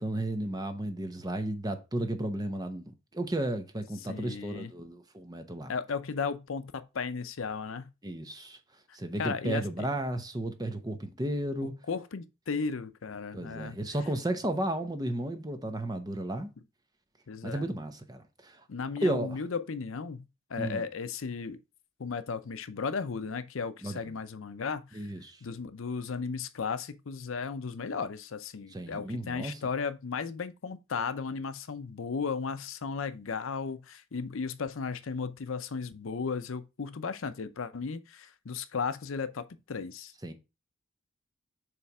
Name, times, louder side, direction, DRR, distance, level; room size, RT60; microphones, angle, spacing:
voice 1, 0.0-5.7 8.0-8.6 8.9-11.7 13.3-16.5 17.4-18.6 19.0-19.4 20.6-20.8 23.8-24.0 24.9-25.4 28.7-29.6 40.2-40.3, right 1 dB, 20° right, 0.8 m, -33 dB
voice 2, 4.0-4.7 5.7-7.9 9.2-9.9 11.9-13.8 17.3-17.6 18.7-20.2 20.5-21.6 22.0-25.1 25.4-40.1, left 5 dB, 75° left, 0.6 m, -35 dB
6.9 x 3.3 x 4.7 m
head